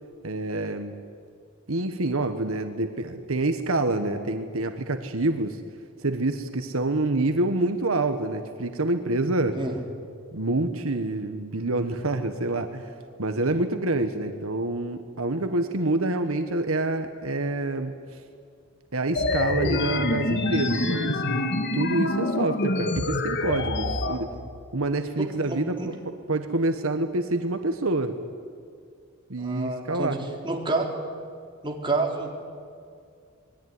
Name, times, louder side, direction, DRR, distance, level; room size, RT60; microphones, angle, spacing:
voice 1, 0.2-0.9 1.7-5.6 6.0-9.6 10.3-12.9 13.2-18.2 18.9-21.2 21.7-24.3 24.7-25.7 26.3-28.2 29.3-30.2, right 2 dB, 75° right, 7 dB, 1.4 m, -27 dB
sound 1, 19.1-24.1, left 2 dB, 55° left, 1.7 m, -26 dB
voice 2, 24.1-24.4 25.2-25.9 29.4-30.2 30.4-30.9 31.6-32.4, right 2 dB, 25° right, 0 dB, 3.8 m, -29 dB
26.5 x 21.0 x 9.7 m, 2.2 s
head